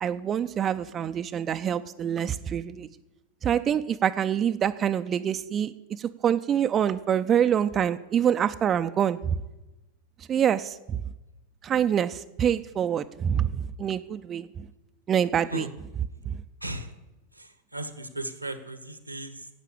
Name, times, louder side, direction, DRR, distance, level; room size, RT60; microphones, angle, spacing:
voice 1, 0.0-2.9 3.4-9.4 10.3-11.0 11.6-14.6 15.1-15.7 16.3-16.4, right 9 dB, 25° right, 10 dB, 0.5 m, -26 dB
voice 2, 16.6-16.9 17.3-19.5, right 1 dB, 90° right, 10 dB, 1.3 m, -36 dB
11.5 x 8.2 x 8.7 m, 1.0 s
figure-of-eight pair, 90°, 0 cm